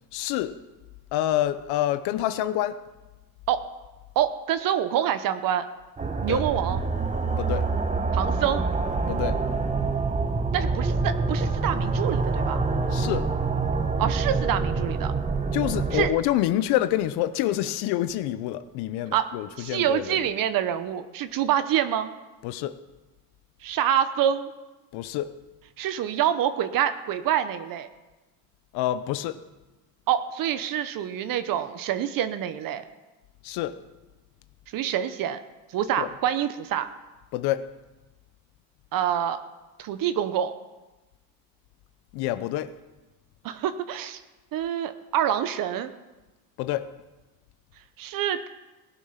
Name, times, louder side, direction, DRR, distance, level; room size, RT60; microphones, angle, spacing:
voice 1, 0.1-0.6 1.1-2.8 6.3-6.4 7.4-7.7 9.1-9.4 12.9-13.3 15.5-20.3 22.4-22.8 24.9-25.3 28.7-29.4 33.4-33.8 36.0-36.1 37.3-37.7 42.1-42.8 46.6-46.9, left 13 dB, 80° left, 13 dB, 0.8 m, -27 dB
voice 2, 4.2-5.7 6.2-6.8 8.1-8.6 10.5-12.6 14.0-15.1 15.9-16.1 19.1-19.3 19.6-22.1 23.6-24.5 25.8-27.9 30.1-32.8 34.7-35.4 35.7-36.9 38.9-39.4 39.8-40.5 43.4-44.2 44.5-45.9 48.0-48.5, right 10 dB, 60° right, 11 dB, 0.9 m, -26 dB
sound 1, 6.0-16.1, right 4 dB, 20° right, 1.2 m, -26 dB
18.0 x 8.3 x 5.7 m, 1.1 s
cardioid pair, 105°, 38 cm